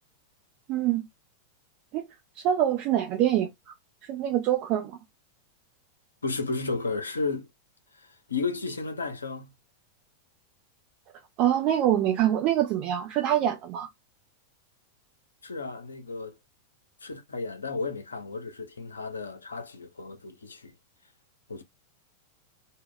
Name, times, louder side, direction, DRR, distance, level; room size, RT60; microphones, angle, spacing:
voice 1, 0.7-1.0 1.9-2.1 2.4-3.7 4.0-5.0 11.4-13.9, right 11 dB, 40° right, 0.5 m, -25 dB
voice 2, 6.2-7.5 8.3-9.5 15.4-16.4 17.0-20.7 21.5-21.6, left 4 dB, 75° left, 0.5 m, -33 dB
2.1 x 2.1 x 3.5 m
figure-of-eight pair, 90°, 0 cm